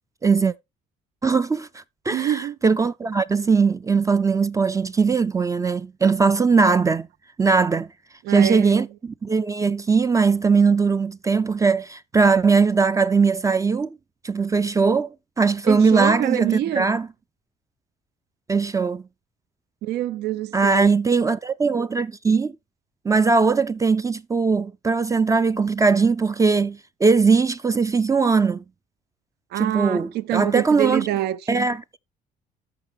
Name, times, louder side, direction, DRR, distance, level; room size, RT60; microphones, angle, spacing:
voice 1, 0.2-0.5 1.2-7.1 7.4-7.9 8.3-14.0 14.2-15.1 15.4-17.1 18.5-19.0 20.5-22.5 23.0-28.6 29.6-31.1 31.5-31.8, right 4 dB, 20° right, 0.4 m, -20 dB
voice 2, 2.1-2.6 8.2-8.8 15.6-16.9 19.8-20.9 29.5-31.6, right 13 dB, 75° right, 0.6 m, -25 dB
13.5 x 5.4 x 3.3 m
cardioid pair, 110°, 17 cm